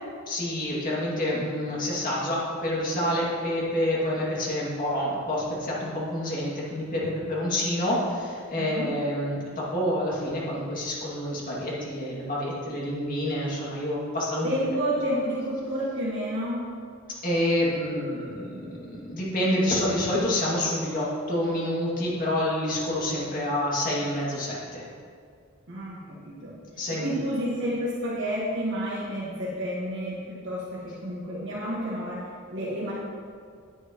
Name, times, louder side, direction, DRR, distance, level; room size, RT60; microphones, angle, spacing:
voice 1, 0.3-14.5 17.2-24.8 26.8-27.1, left 1 dB, 45° left, -6 dB, 2.3 m, -28 dB
voice 2, 8.6-8.9 14.4-16.6 25.7-26.6 26.9-32.9, equal, 65° right, -6 dB, 1.5 m, -30 dB
9.8 x 9.3 x 3.0 m, 2.2 s
head